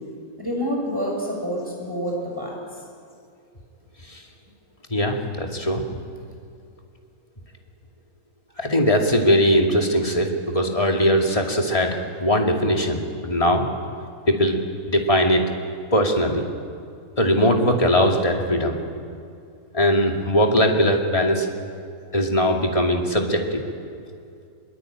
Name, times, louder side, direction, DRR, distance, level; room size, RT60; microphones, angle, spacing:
voice 1, 0.4-2.6, equal, 15° right, -2 dB, 6.5 m, -27 dB
voice 2, 4.9-5.8 8.6-13.7 14.3-14.5 14.9-15.4 15.9-16.4 17.2-18.8 19.7-21.5 22.1-23.6, equal, 25° left, 2 dB, 2.5 m, -20 dB
23.5 x 22.0 x 9.1 m, 2.4 s
omnidirectional pair, 1.5 m